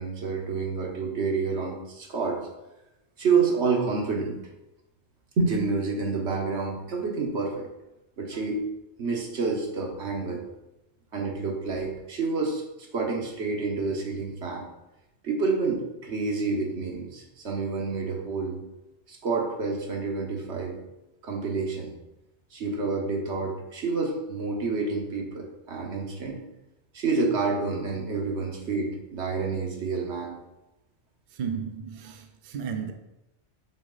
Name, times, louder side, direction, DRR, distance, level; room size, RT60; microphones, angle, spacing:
voice 1, 0.0-2.4 3.2-4.4 5.4-7.7 8.2-8.6 9.0-10.4 11.1-12.6 12.9-14.7 15.2-18.6 19.1-20.8 21.2-21.9 22.5-26.4 26.9-30.4, right 4 dB, 75° right, 1.4 m, -28 dB
voice 2, 31.3-32.9, right 6 dB, 55° right, 0.6 m, -34 dB
6.4 x 4.1 x 3.9 m
omnidirectional pair, 1.2 m